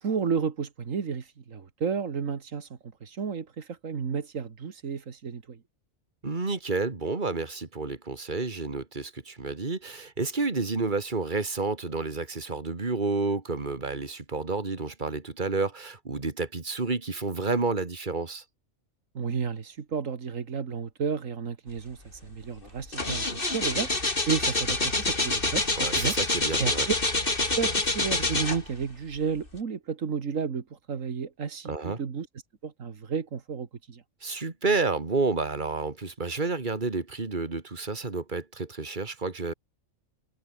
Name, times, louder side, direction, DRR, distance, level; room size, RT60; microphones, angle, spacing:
voice 1, 0.0-2.7 3.0-5.6 19.2-22.0 22.2-23.9 24.3-25.7 26.0-26.2 26.6-27.0 27.6-32.3 32.6-34.0, right 6 dB, 90° right, 2.1 m, -32 dB
voice 2, 6.2-18.4 25.8-26.9 31.6-32.0 34.2-39.5, right 3 dB, 40° right, 2.5 m, -30 dB
sound 1, 22.1-22.3 22.6-28.9 29.5-29.6, left 2 dB, 45° left, 3.3 m, -27 dB
omnidirectional pair, 1.3 m